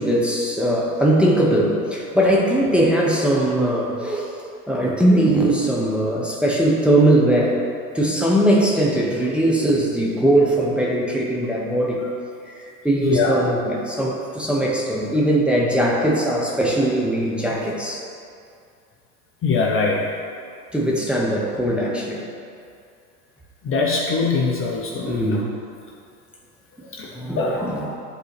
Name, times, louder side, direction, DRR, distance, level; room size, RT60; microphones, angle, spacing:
voice 1, 0.0-4.3 4.7-7.6 7.9-12.0 12.5-18.1 20.7-22.2 25.1-25.5 27.1-27.9, right 1 dB, ahead, -4 dB, 0.9 m, -20 dB
voice 2, 13.0-13.4 19.4-20.0 23.6-25.4 27.0-27.1 27.3-27.6, left 4 dB, 30° left, -2 dB, 0.8 m, -21 dB
11.0 x 3.9 x 3.3 m, 2.5 s
hypercardioid pair, 110°, 47 cm